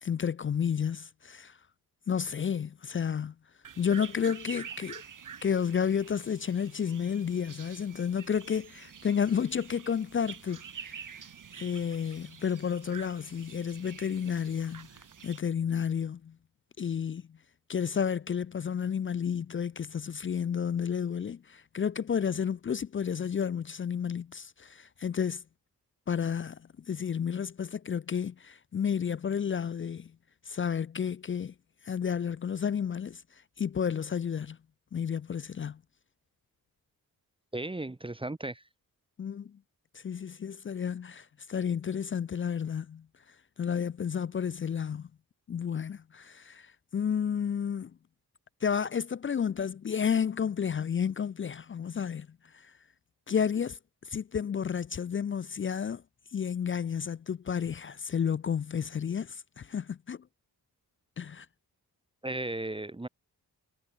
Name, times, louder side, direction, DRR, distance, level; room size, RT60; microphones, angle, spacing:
voice 1, 0.0-1.6 2.1-3.3 3.8-5.0 5.4-11.0 11.6-14.9 15.2-16.4 16.8-17.4 17.7-25.4 26.1-26.6 26.9-30.1 30.5-31.5 31.8-33.2 33.6-34.6 34.9-35.8 39.2-39.6 39.9-43.1 43.6-45.1 45.5-47.9 48.6-52.3 52.5-52.7 53.3-53.8 54.0-56.0 56.3-60.2 61.2-61.5, left 7 dB, 35° left, 0.4 m, -31 dB
sound 1, 3.6-15.4, right 7 dB, 55° right, 1.9 m, -47 dB
voice 2, 37.5-38.6 62.2-63.1, right 2 dB, 15° right, 1.1 m, -35 dB
wide cardioid pair, 110°, 37 cm